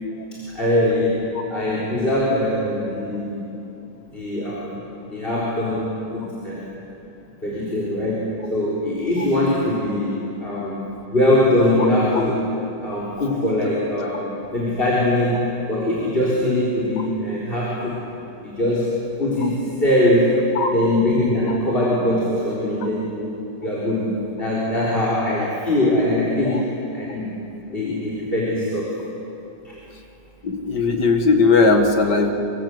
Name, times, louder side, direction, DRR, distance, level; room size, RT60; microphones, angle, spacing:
voice 1, 0.3-1.2 1.5-3.5 4.1-4.7 5.0-6.7 7.4-10.8 11.1-12.4 12.8-18.0 18.4-20.4 20.7-23.3 23.6-24.1 24.4-27.3 27.7-28.9 29.6-29.7, left 1 dB, 30° left, -5 dB, 4.4 m, -22 dB
voice 2, 30.4-32.3, left 4 dB, 65° left, 4 dB, 2.1 m, -17 dB
26.5 x 24.5 x 7.9 m, 2.9 s
omnidirectional pair, 1.9 m